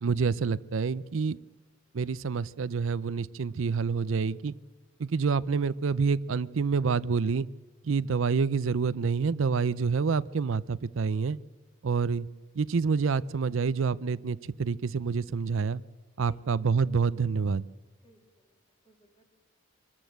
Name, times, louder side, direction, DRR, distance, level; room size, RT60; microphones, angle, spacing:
voice 1, 0.0-1.4 1.9-4.5 5.0-7.5 7.8-11.4 11.8-12.3 12.5-15.8 16.2-17.7, right 5 dB, 75° right, 18 dB, 0.5 m, -27 dB
voice 2, 16.2-16.7 18.0-18.6 18.8-19.4, equal, 25° left, 3 dB, 3.3 m, -61 dB
24.5 x 13.5 x 8.0 m, 1.3 s
head